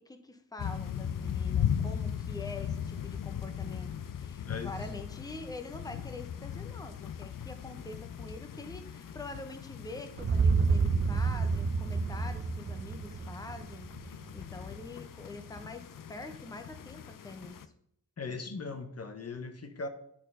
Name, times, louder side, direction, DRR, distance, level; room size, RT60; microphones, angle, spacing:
voice 1, 0.0-17.7, left 2 dB, 10° left, 0.9 m, -45 dB
sound 1, 0.6-17.7, left 9 dB, 80° left, 0.5 m, -38 dB
voice 2, 4.4-4.8 18.2-19.9, left 4 dB, 50° left, 0.9 m, -39 dB
sound 2, 10.2-14.2, right 4 dB, 40° right, 0.6 m, -29 dB
8.9 x 4.3 x 5.5 m
wide cardioid pair, 90°, 32 cm